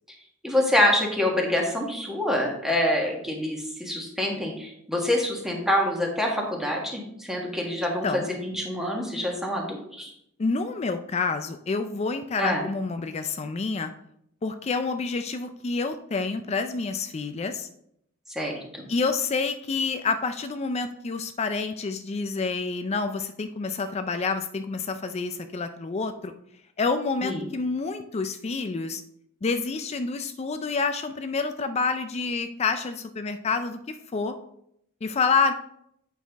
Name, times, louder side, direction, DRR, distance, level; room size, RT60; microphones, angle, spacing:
voice 1, 0.4-10.1 12.4-12.6 18.3-18.8 27.2-27.4, left 1 dB, ahead, -1 dB, 1.4 m, -26 dB
voice 2, 10.4-13.9 14.4-17.7 18.9-26.3 26.8-29.0 29.4-34.4 35.0-35.5, left 4 dB, 30° left, 8 dB, 0.4 m, -28 dB
8.5 x 5.6 x 3.5 m, 0.75 s
head